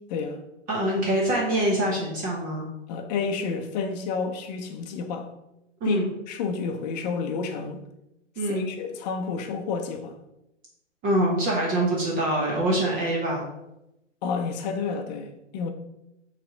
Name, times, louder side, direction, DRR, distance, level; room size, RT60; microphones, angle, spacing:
voice 1, 0.7-2.7 5.8-6.1 8.4-8.7 11.0-13.4, right 1 dB, 25° right, -3 dB, 1.2 m, -24 dB
voice 2, 2.9-5.3 5.8-6.0 6.3-7.8 8.5-10.2 14.2-15.7, left 5 dB, 35° left, 5 dB, 0.8 m, -30 dB
5.6 x 3.4 x 5.0 m, 0.90 s
hypercardioid pair, 135°, 36 cm